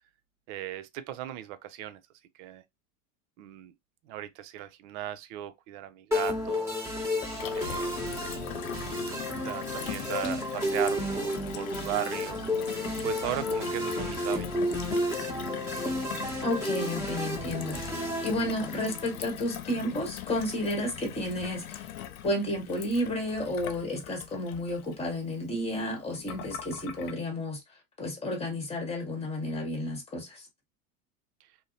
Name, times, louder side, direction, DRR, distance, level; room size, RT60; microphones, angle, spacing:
voice 1, 0.5-2.0 2.4-2.6 3.4-3.7 4.0-7.0 7.5-8.1 9.4-12.4 13.0-14.7, right 13 dB, 55° right, 0.5 m, -37 dB
sound 1, 6.1-19.1, left 1 dB, 5° right, 1.1 m, -32 dB
Gurgling / Water tap faucet / Sink (filling or washing), 7.2-27.1, left 11 dB, 75° left, 0.5 m, -41 dB
voice 2, 16.4-21.9 22.2-27.6 28.0-30.5, left 1 dB, 15° left, 1.2 m, -32 dB
2.7 x 2.1 x 2.5 m
hypercardioid pair, 95°, 44 cm